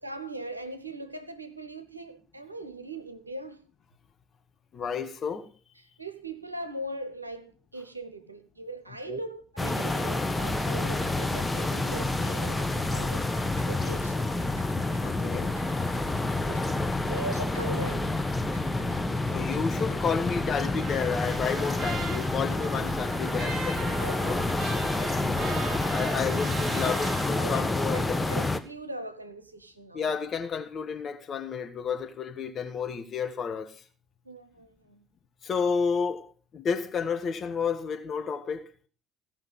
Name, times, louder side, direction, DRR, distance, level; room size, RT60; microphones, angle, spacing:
voice 1, 0.0-3.6 5.8-13.3 13.7-14.4 16.4-16.8 17.1-18.2 26.8-27.6 27.9-30.1 34.2-35.0, right 1 dB, 90° right, 0.8 m, -40 dB
voice 2, 4.7-5.5 9.1-9.2 15.0-15.6 19.2-24.5 25.9-28.3 29.9-33.8 35.4-38.7, left 6 dB, 45° left, 1.9 m, -31 dB
sound 1, 9.6-28.6, left 2 dB, 10° left, 1.4 m, -28 dB
sound 2, 10.4-26.2, left 1 dB, 90° left, 1.1 m, -45 dB
Trumpet, 20.5-27.3, right 5 dB, 45° right, 2.9 m, -40 dB
16.5 x 5.8 x 6.4 m
figure-of-eight pair, 55°, 0 cm